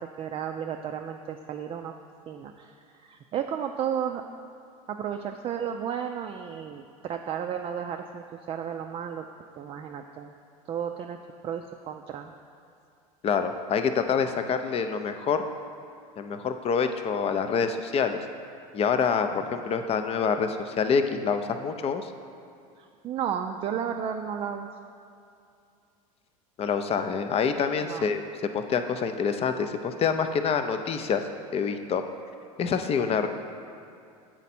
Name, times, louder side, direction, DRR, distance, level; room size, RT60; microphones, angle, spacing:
voice 1, 0.0-1.9 2.3-4.2 4.9-9.3 9.6-10.3 10.7-11.2 11.4-12.3 19.3-19.4 22.8-24.7 27.8-28.1, right 8 dB, 30° right, 4 dB, 0.3 m, -33 dB
voice 2, 13.2-15.4 16.2-18.2 18.7-22.1 26.6-28.2 28.5-31.2 31.5-32.0 32.6-33.3, left 6 dB, 30° left, 8 dB, 0.5 m, -26 dB
8.1 x 4.4 x 4.2 m, 2.5 s
hypercardioid pair, 90°, 19 cm